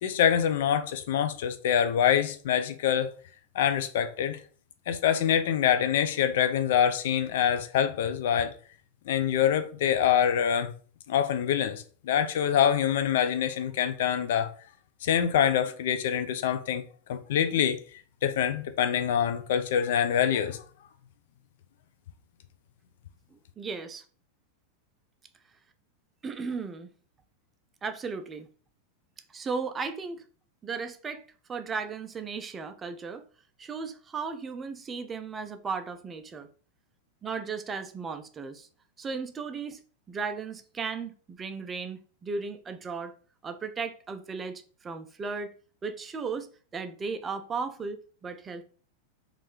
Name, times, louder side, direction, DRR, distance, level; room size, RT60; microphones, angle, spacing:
voice 1, 0.0-3.1 3.5-4.4 4.9-8.5 9.1-10.7 11.1-14.5 15.0-16.8 17.1-17.8 18.2-20.6, left 9 dB, 55° left, 0.3 m, -25 dB
voice 2, 23.3-24.0 26.2-26.9 27.8-28.5 29.3-30.2 30.6-33.2 33.6-36.5 37.2-38.7 39.0-39.8 40.1-43.1 43.4-45.5 45.8-48.6, right 5 dB, 20° right, 0.4 m, -36 dB
3.1 x 2.4 x 3.4 m
figure-of-eight pair, 90°, 0 cm